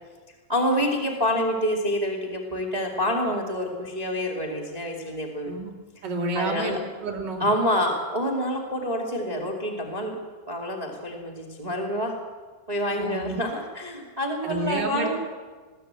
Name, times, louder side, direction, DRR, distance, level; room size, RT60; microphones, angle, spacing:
voice 1, 0.5-5.5 6.3-6.8 7.4-10.2 10.5-12.1 12.7-15.2, equal, 70° right, 1 dB, 0.3 m, -27 dB
voice 2, 6.0-7.5 12.9-13.4 14.4-15.2, right 2 dB, 25° right, -1 dB, 2.9 m, -30 dB
21.5 x 16.5 x 8.3 m, 1.4 s
omnidirectional pair, 5.7 m